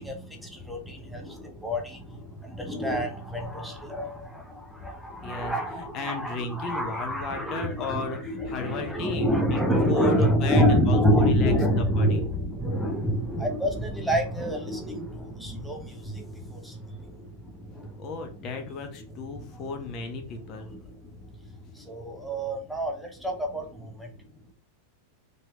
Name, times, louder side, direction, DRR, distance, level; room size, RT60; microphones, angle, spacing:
voice 1, 0.0-2.2 2.5-16.7 17.8-17.9 20.7-20.8 21.9-24.1, equal, ahead, 1 dB, 0.9 m, -27 dB
voice 2, 5.2-12.2 18.0-20.7, left 3 dB, 35° left, 4 dB, 0.7 m, -34 dB
4.2 x 3.3 x 2.5 m, 0.39 s
figure-of-eight pair, 90°, 0 cm